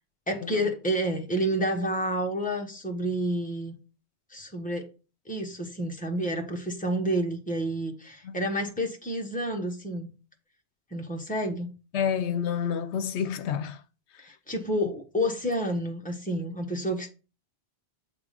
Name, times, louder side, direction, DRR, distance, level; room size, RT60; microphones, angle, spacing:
voice 1, 0.3-3.7 4.3-4.9 5.3-10.1 10.9-11.7 14.2-17.1, right 1 dB, 10° left, 1.0 m, -29 dB
voice 2, 11.9-13.8, left 8 dB, 80° left, 0.9 m, -29 dB
7.4 x 3.6 x 5.0 m
omnidirectional pair, 1.1 m